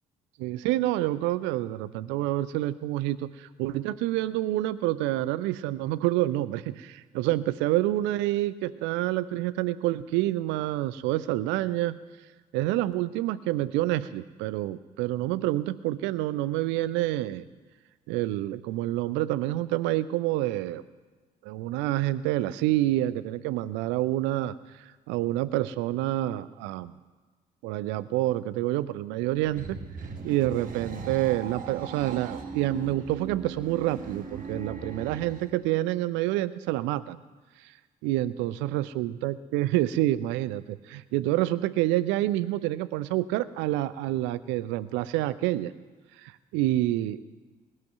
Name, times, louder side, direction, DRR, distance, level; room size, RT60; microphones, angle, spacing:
voice 1, 0.4-12.0 12.5-17.4 18.1-20.8 21.4-24.5 25.1-26.9 27.6-29.8 30.2-37.2 38.0-45.7 46.2-47.2, right 15 dB, 65° right, 16 dB, 0.7 m, -28 dB
sound 1, 29.2-35.5, right 5 dB, 40° right, 1.9 m, -39 dB
19.5 x 7.8 x 9.2 m, 1.4 s
figure-of-eight pair, 45°, 21 cm